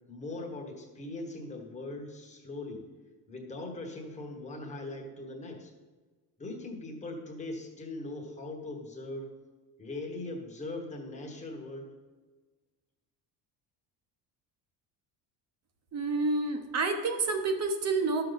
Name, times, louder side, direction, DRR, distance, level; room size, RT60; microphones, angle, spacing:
voice 1, 0.1-2.9 3.3-5.7 6.4-9.4 9.8-11.9, left 2 dB, 15° left, 1 dB, 1.3 m, -40 dB
voice 2, 15.9-18.2, right 3 dB, 40° right, 6 dB, 1.0 m, -29 dB
12.0 x 6.7 x 4.0 m, 1.3 s
cardioid pair, 170°, 42 cm